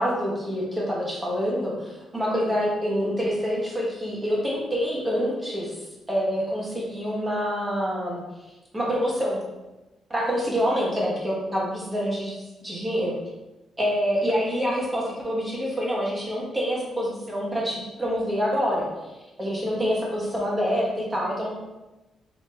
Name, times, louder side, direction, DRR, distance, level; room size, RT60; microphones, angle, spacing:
voice 1, 0.0-5.7 6.1-8.2 8.7-9.4 10.1-12.3 12.6-13.1 13.8-18.9 19.4-21.6, equal, 15° right, -4 dB, 1.2 m, -26 dB
5.1 x 3.0 x 3.4 m, 1.0 s
cardioid pair, 170°, 0 cm